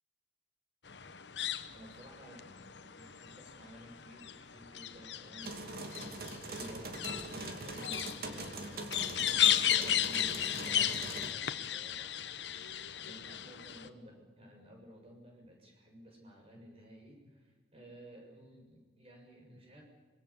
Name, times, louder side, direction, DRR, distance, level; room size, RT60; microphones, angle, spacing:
sound 1, 0.9-13.9, left 11 dB, 80° left, 1.1 m, -35 dB
voice 1, 1.7-5.6 6.0-19.8, equal, 35° right, 1 dB, 7.0 m, -54 dB
sound 2, 5.4-11.3, right 2 dB, 55° right, 2.7 m, -42 dB
25.5 x 21.5 x 7.3 m, 1.4 s
head